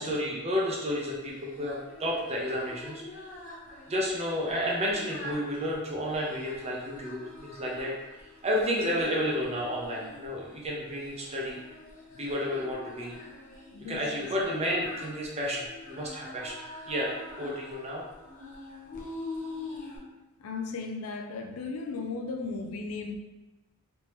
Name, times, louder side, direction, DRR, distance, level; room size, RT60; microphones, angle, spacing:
voice 1, 0.0-3.2 3.9-11.6 12.1-13.2 13.9-16.6 16.9-18.0, equal, 30° right, 0.7 m, -31 dB
Singing, 1.2-20.0, left 2 dB, 40° left, 0.8 m, -45 dB
voice 2, 13.7-14.3 20.4-23.2, left 4 dB, 80° left, 0.4 m, -36 dB
3.3 x 2.9 x 3.0 m
head